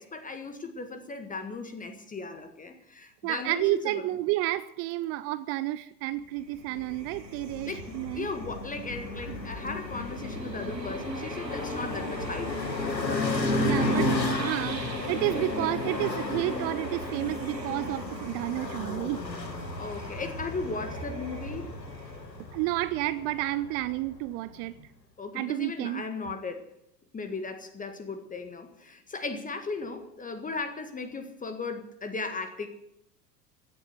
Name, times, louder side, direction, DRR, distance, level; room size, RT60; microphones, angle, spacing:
voice 1, 0.0-4.1 7.7-12.6 13.5-14.0 19.8-21.8 25.2-26.7 27.1-32.7, left 3 dB, 15° left, 1.6 m, -37 dB
voice 2, 3.2-8.3 9.3-9.5 13.3-14.1 14.4-19.2 22.5-24.8 25.3-26.0, right 16 dB, 30° right, 0.5 m, -31 dB
sound 1, 6.3-22.6, right 5 dB, 80° right, 2.2 m, -48 dB
sound 2, 6.7-24.2, left 1 dB, 85° left, 2.0 m, -33 dB
16.0 x 11.0 x 7.9 m
figure-of-eight pair, 85°, 49 cm